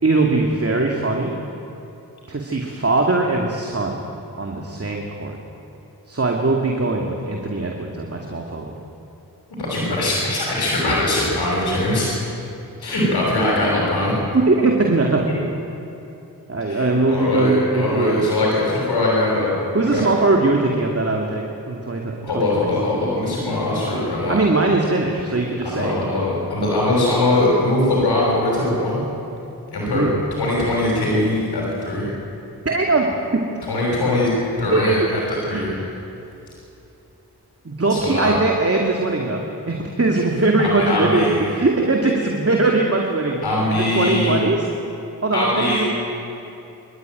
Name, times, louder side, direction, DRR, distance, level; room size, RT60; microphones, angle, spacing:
voice 1, 0.0-1.4 2.3-4.0 4.4-5.4 6.1-8.7 14.3-15.2 16.5-18.3 19.7-22.7 24.3-26.0 29.9-30.2 32.6-33.4 34.7-35.6 37.6-43.4 43.7-44.7 45.2-45.9, right 3 dB, 35° right, 0 dB, 2.5 m, -21 dB
voice 2, 9.6-12.1 12.8-14.1 15.3-15.4 16.7-20.0 22.2-24.4 25.6-29.0 29.7-30.0 30.4-32.1 33.7-34.3 34.6-35.7 37.9-38.4 40.6-41.4 43.4-44.4 45.3-45.9, left 1 dB, 80° left, -5 dB, 6.1 m, -21 dB
25.5 x 12.5 x 9.3 m, 2.8 s
cardioid pair, 40°, 38 cm